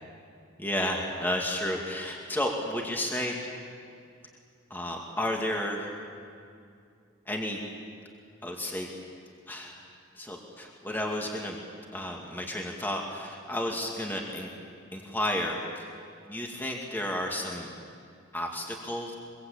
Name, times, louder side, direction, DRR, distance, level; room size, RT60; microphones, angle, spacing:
voice 1, 0.6-3.4 4.7-5.9 7.3-7.6 8.4-8.9 9.5-9.8 10.1-11.6 11.9-14.5 14.9-15.9 16.3-17.7 18.3-19.1, left 1 dB, 10° left, 0 dB, 2.3 m, -32 dB
24.5 x 23.0 x 8.7 m, 2.4 s
head